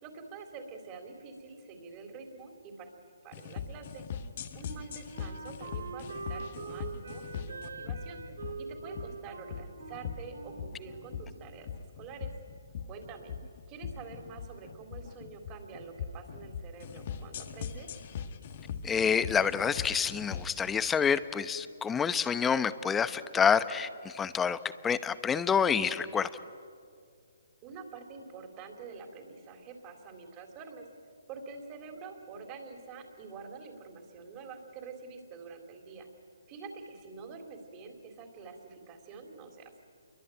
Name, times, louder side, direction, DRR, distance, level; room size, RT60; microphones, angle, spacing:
voice 1, 0.0-2.9 3.2-4.0 4.5-8.2 8.6-11.7 12.0-12.3 12.9-13.3 13.7-17.9 27.6-30.9 31.3-36.1 36.5-39.8, right 4 dB, 25° right, 3.7 m, -46 dB
sound 1, 3.3-20.6, left 7 dB, 45° left, 1.7 m, -41 dB
Wind instrument woodwind instrument, 4.2-11.7, right 4 dB, 80° right, 3.8 m, -44 dB
voice 2, 18.8-24.6 24.8-26.3, left 7 dB, 10° left, 0.9 m, -28 dB
28.0 x 23.0 x 9.2 m
hypercardioid pair, 150°, 0 cm